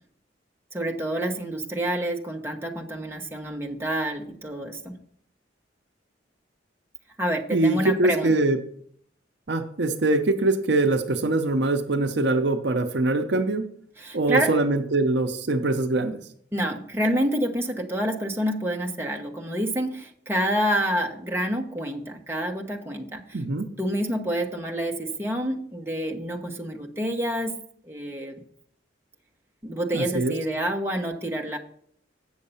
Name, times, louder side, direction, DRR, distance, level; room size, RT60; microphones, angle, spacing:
voice 1, 0.7-5.0 7.2-8.3 14.0-14.5 16.5-23.2 23.8-27.6 27.9-28.3 29.6-31.6, right 1 dB, 15° right, 1 dB, 1.0 m, -28 dB
voice 2, 7.5-8.6 9.5-13.6 14.1-16.2 23.3-23.7 29.9-30.3, right 2 dB, 65° right, 7 dB, 0.7 m, -23 dB
8.0 x 6.4 x 5.5 m, 0.63 s
head